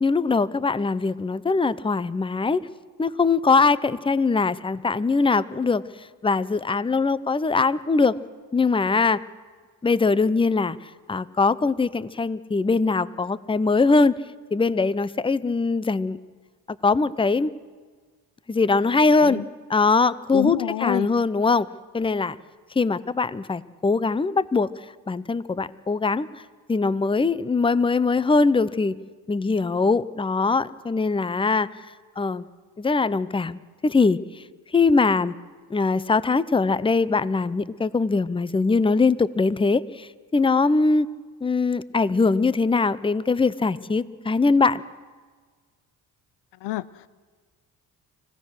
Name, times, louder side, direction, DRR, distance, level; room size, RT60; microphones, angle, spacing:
voice 1, 0.0-2.6 3.0-5.8 6.2-8.2 8.5-9.2 9.8-10.8 11.1-14.1 14.5-16.2 16.7-17.5 18.5-20.6 20.8-21.7 21.9-22.4 22.8-24.7 25.1-26.3 26.7-29.0 29.3-31.7 32.2-32.5 32.8-34.4 34.7-35.3 35.7-41.1 41.4-44.8, left 4 dB, 15° left, 18 dB, 0.6 m, -22 dB
voice 2, 20.3-21.1 46.6-47.1, left 16 dB, 90° left, 19 dB, 0.7 m, -27 dB
25.0 x 16.5 x 6.5 m, 1.5 s
cardioid pair, 75°, 40 cm